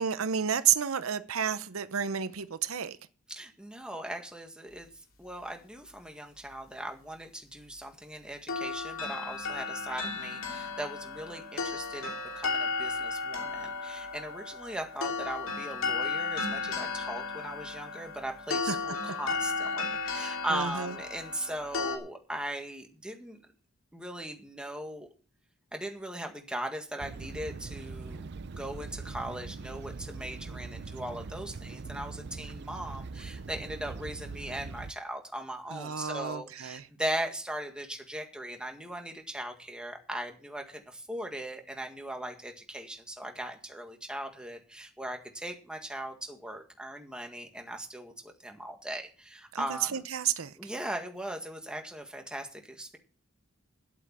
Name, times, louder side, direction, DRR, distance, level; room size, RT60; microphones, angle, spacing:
voice 1, 0.0-3.0 18.7-18.8 20.5-20.9 35.7-36.9 49.5-50.5, right 8 dB, 85° right, 0.8 m, -30 dB
voice 2, 3.3-4.9 5.2-23.4 23.9-25.1 25.7-50.0 50.6-53.0, right 1 dB, 5° right, 1.8 m, -39 dB
sound 1, 8.5-22.0, left 4 dB, 70° left, 2.8 m, -34 dB
sound 2, 27.0-34.9, right 4 dB, 55° right, 0.5 m, -42 dB
9.9 x 8.3 x 7.4 m
head